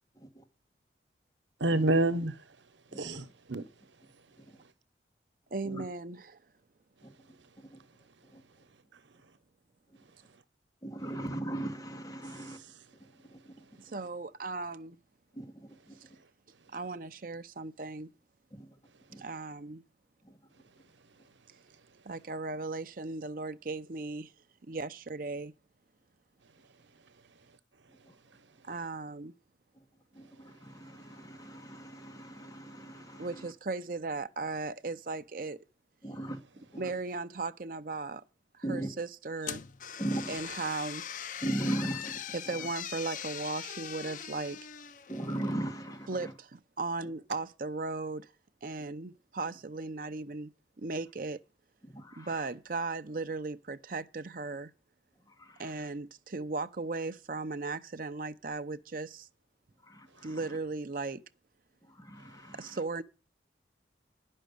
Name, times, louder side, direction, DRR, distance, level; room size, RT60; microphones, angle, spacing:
voice 1, 1.6-2.6 2.9-3.7 8.9-9.0 13.6-13.7 28.3-28.4 32.3-32.4, right 2 dB, 85° right, 1.0 m, -29 dB
voice 2, 2.9-3.3 4.4-4.6 5.6-5.8 7.0-7.1 7.6-7.8 8.2-8.4 9.9-10.0 10.8-12.6 13.2-13.8 15.3-16.0 18.5-18.8 19.1-19.2 20.2-20.4 27.9-28.1 29.7-29.8 30.1-33.5 36.0-36.9 38.6-38.9 40.0-40.4 41.4-42.2 42.5-42.7 45.1-46.3 51.8-52.5 55.2-55.9 59.8-60.6 61.8-62.8, right 1 dB, 20° left, 1.9 m, -39 dB
voice 3, 5.5-6.4 13.8-15.0 16.7-18.1 19.2-19.8 22.1-24.3 24.7-25.5 28.6-29.3 33.2-35.6 36.8-38.2 38.5-39.6 40.3-41.0 42.3-44.6 46.1-48.3 48.6-51.4 52.2-54.7 55.6-59.3 60.2-61.2 62.5-63.0, right 3 dB, 50° right, 0.6 m, -37 dB
sound 1, 39.4-45.6, left 9 dB, 45° left, 0.5 m, -41 dB
10.0 x 6.4 x 8.2 m
head